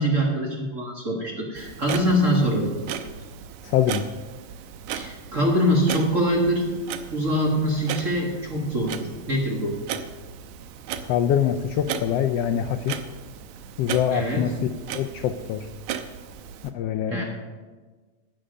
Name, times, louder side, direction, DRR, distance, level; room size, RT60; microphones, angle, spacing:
voice 1, 0.0-2.7 4.9-6.7 7.1-9.8 14.1-14.4 17.1-17.2, equal, 35° right, -1 dB, 1.4 m, -24 dB
Clock, 1.6-16.7, right 8 dB, 85° right, 2.0 m, -36 dB
voice 2, 3.6-4.0 11.1-13.0 13.8-14.5 14.9-15.7 16.7-17.2, left 9 dB, 80° left, 7 dB, 1.4 m, -24 dB
10.0 x 9.2 x 6.7 m, 1.3 s
omnidirectional pair, 3.3 m